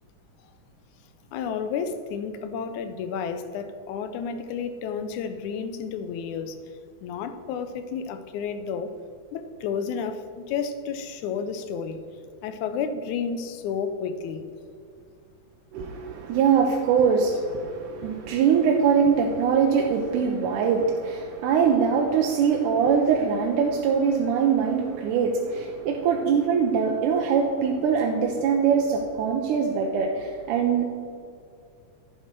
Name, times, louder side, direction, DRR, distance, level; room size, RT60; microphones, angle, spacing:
voice 1, 1.3-6.6 7.0-8.9 9.3-12.0 12.4-14.4, left 6 dB, 80° left, 10 dB, 2.1 m, -31 dB
voice 2, 15.7-30.8, right 6 dB, 90° right, 1 dB, 2.3 m, -22 dB
11.0 x 8.0 x 4.5 m, 2.4 s
omnidirectional pair, 3.5 m